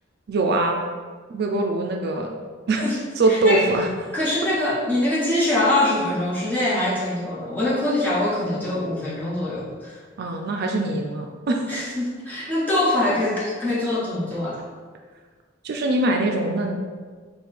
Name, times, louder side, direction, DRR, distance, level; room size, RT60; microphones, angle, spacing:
voice 1, 0.3-0.8 1.3-2.3 2.7-2.8 3.2-3.9 10.2-11.6 15.6-16.8, right 2 dB, 55° right, 2 dB, 0.4 m, -22 dB
voice 2, 3.3-3.7 4.1-10.0 11.7-14.6, left 1 dB, 10° left, -8 dB, 1.2 m, -23 dB
5.4 x 2.2 x 4.2 m, 1.5 s
head